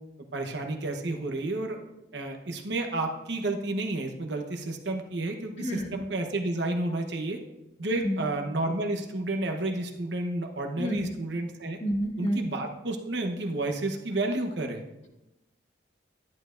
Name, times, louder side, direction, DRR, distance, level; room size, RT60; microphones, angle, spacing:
voice 1, 0.3-1.8 2.1-7.4 7.8-11.8 12.2-14.8, right 2 dB, 65° right, 3 dB, 1.0 m, -31 dB
voice 2, 5.6-6.0 7.9-8.2 10.8-11.1 11.8-12.4, equal, 35° left, 1 dB, 1.4 m, -30 dB
11.5 x 10.5 x 2.6 m, 0.97 s
head